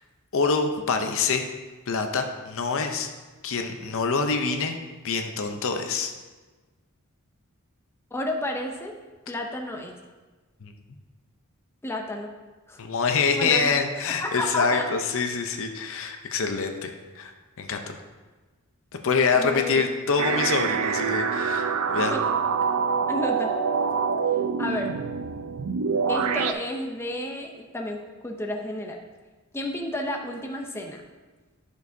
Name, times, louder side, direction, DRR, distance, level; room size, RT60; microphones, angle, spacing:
voice 1, 0.3-1.4 1.9-3.1 3.4-4.8 5.0-6.1 10.6-10.7 12.8-17.3 17.6-18.0 19.0-22.1, left 4 dB, 60° left, 5 dB, 0.7 m, -25 dB
voice 2, 8.1-8.9 9.3-10.0 11.8-12.3 12.7-12.8 13.3-13.8 14.2-14.8 19.3-19.8 22.1-22.2 23.1-23.5 24.6-24.9 26.1-29.0 29.5-31.0, left 1 dB, 10° left, 2 dB, 0.6 m, -31 dB
sound 1, 20.2-26.5, right 5 dB, 80° right, 0.5 m, -25 dB
11.0 x 6.4 x 2.7 m, 1.3 s
head